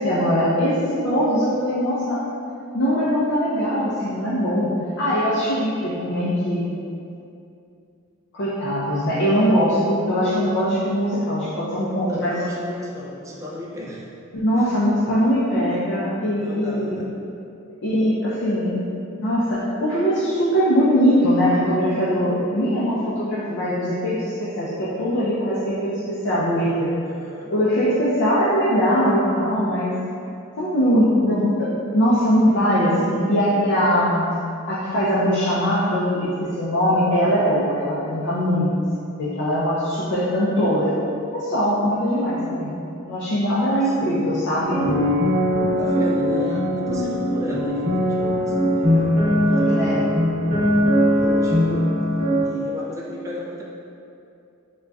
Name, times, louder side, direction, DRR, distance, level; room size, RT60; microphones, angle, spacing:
voice 1, 0.0-2.2 2.7-4.7 5.0-6.6 8.3-12.3 14.3-16.9 17.8-26.9 27.5-29.9 30.6-34.3 34.7-38.7 39.2-40.9 41.3-44.9 49.6-50.0, equal, 60° left, -9 dB, 0.4 m, -21 dB
voice 2, 12.1-14.1 14.5-14.7 15.7-15.9 16.4-17.1 27.0-27.5 43.8-44.3 45.7-49.1 49.5-50.6 50.9-51.9 52.4-53.6, left 1 dB, 15° right, -4 dB, 0.3 m, -35 dB
sound 1, 44.6-52.4, equal, 45° right, 0.9 m, -20 dB
3.8 x 2.2 x 2.2 m, 2.6 s
head